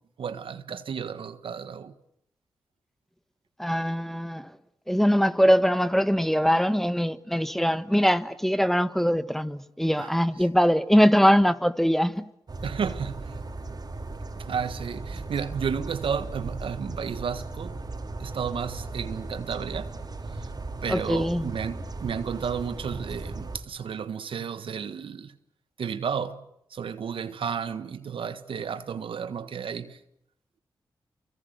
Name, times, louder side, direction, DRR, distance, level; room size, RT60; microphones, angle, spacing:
voice 1, 0.2-1.9 10.0-10.1 10.4-10.5 12.6-13.4 14.4-17.8 18.2-19.9 20.4-20.5 20.8-25.3 25.8-26.4 26.7-30.0, right 7 dB, 75° right, 1.4 m, -32 dB
voice 2, 3.6-4.5 4.9-12.2 20.9-21.5, equal, 5° left, 1.4 m, -22 dB
sound 1, 12.5-23.6, right 2 dB, 45° right, 3.5 m, -37 dB
29.0 x 25.0 x 8.0 m
supercardioid pair, 40°, 9 cm